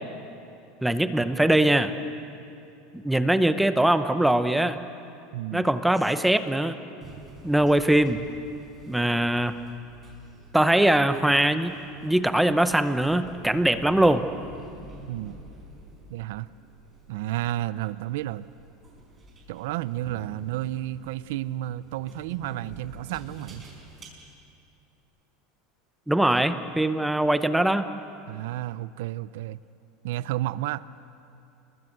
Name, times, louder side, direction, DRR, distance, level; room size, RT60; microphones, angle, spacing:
voice 1, 0.8-1.9 2.9-4.8 5.5-6.8 7.4-8.2 8.9-9.6 10.5-11.7 12.0-14.2 26.1-27.9, right 1 dB, 5° right, 10 dB, 0.8 m, -22 dB
voice 2, 5.3-5.7 15.1-15.4 16.1-16.5 17.1-18.5 19.5-23.6 28.3-29.6 30.0-30.8, right 14 dB, 75° right, 16 dB, 0.6 m, -31 dB
sound 1, 7.0-24.0, right 2 dB, 20° right, 5.0 m, -48 dB
29.0 x 21.5 x 8.0 m, 2.6 s
supercardioid pair, 155°, 0 cm